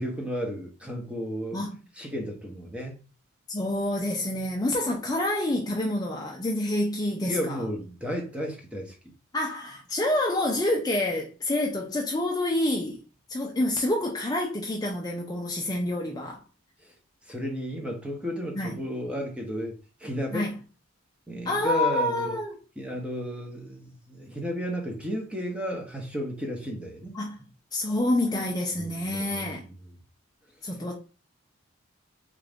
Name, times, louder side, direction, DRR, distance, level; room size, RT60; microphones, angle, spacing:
voice 1, 0.0-1.6 2.0-3.0 7.2-9.0 16.8-16.9 17.2-19.7 20.0-20.5 21.3-22.4 22.8-27.2 28.8-29.5, equal, 5° right, 0.7 m, -33 dB
voice 2, 3.5-7.6 9.3-13.0 13.3-16.4 18.6-18.8 20.3-20.5 21.5-22.5 27.1-27.4 27.7-29.7 30.6-31.0, left 1 dB, 20° left, 0.4 m, -27 dB
3.7 x 2.5 x 3.4 m
head